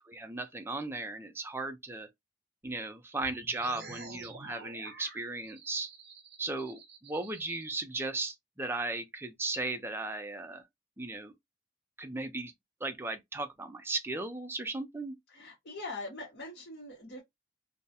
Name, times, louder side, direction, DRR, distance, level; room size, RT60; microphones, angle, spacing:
voice 1, 0.0-2.1 2.6-5.9 6.4-10.6 11.0-11.3 12.0-12.5 12.8-15.2, right 2 dB, 10° right, 0.3 m, -36 dB
sound 1, 3.2-7.6, right 3 dB, 65° right, 0.7 m, -49 dB
voice 2, 15.3-17.2, left 2 dB, 70° left, 0.9 m, -42 dB
2.2 x 2.0 x 2.7 m
head